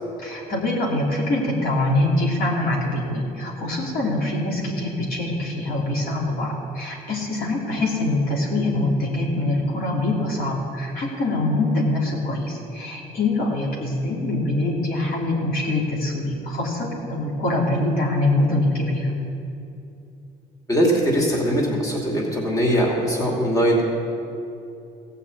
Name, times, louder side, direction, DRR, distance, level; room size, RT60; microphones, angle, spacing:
voice 1, 0.2-19.1, left 2 dB, 60° left, -3 dB, 2.7 m, -24 dB
voice 2, 20.7-23.8, equal, 20° left, -2 dB, 2.7 m, -21 dB
15.5 x 5.7 x 8.4 m, 2.7 s
cardioid pair, 110°, 17 cm